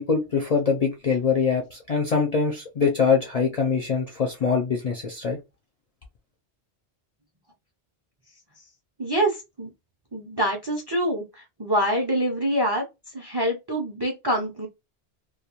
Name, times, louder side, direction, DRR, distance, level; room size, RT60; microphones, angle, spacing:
voice 1, 0.0-5.4, left 5 dB, 55° left, 0.4 m, -23 dB
voice 2, 9.0-9.7 10.1-12.8 13.1-14.7, right 1 dB, 35° right, 0.4 m, -25 dB
2.3 x 2.2 x 2.8 m
omnidirectional pair, 1.2 m